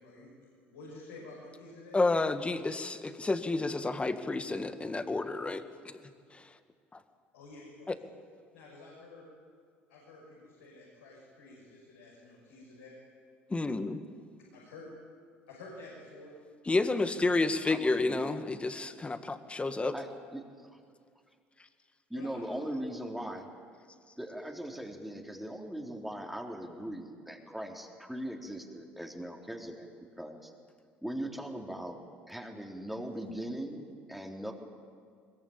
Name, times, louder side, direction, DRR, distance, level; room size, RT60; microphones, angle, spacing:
voice 1, 0.0-2.0 7.3-8.1 8.5-9.2 9.9-12.9 14.5-14.9 15.5-16.3 17.8-18.0 22.1-22.6, left 2 dB, 80° left, -5 dB, 6.5 m, -50 dB
voice 2, 1.9-6.0 6.3-6.5 6.9-7.0 7.9-8.0 13.5-14.0 16.7-19.9, left 3 dB, 20° left, 9 dB, 1.9 m, -30 dB
voice 3, 17.7-18.3 19.9-20.4 22.1-23.5 24.2-29.9 30.2-30.5 31.0-32.0 32.3-34.5, right 1 dB, 5° right, 1 dB, 3.6 m, -39 dB
22.5 x 22.0 x 8.8 m, 2.1 s
hypercardioid pair, 65°, 6 cm